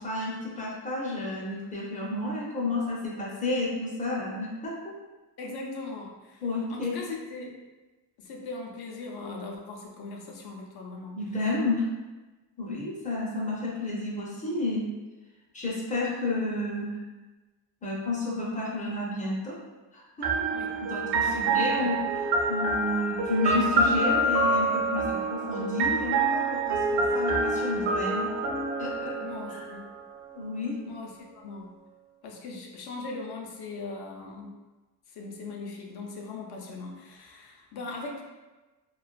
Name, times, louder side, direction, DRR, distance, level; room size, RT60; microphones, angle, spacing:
voice 1, 0.0-4.9 6.4-6.9 11.2-11.9 12.6-14.8 15.5-17.0 17.8-19.6 19.9-20.5 20.8-22.0 22.5-28.3 28.8-29.1 29.5-29.6 30.3-30.8, left 2 dB, 20° left, -5 dB, 0.5 m, -31 dB
voice 2, 5.4-6.4 6.7-7.5 8.2-11.2 20.5-20.8 21.2-21.9 29.2-29.9 30.8-31.7 32.2-34.5 35.1-38.2, left 3 dB, 65° left, 0 dB, 0.5 m, -39 dB
sound 1, 20.2-30.0, right 2 dB, 75° right, 0.5 m, -27 dB
2.4 x 2.3 x 2.2 m, 1.2 s
wide cardioid pair, 140°, 41 cm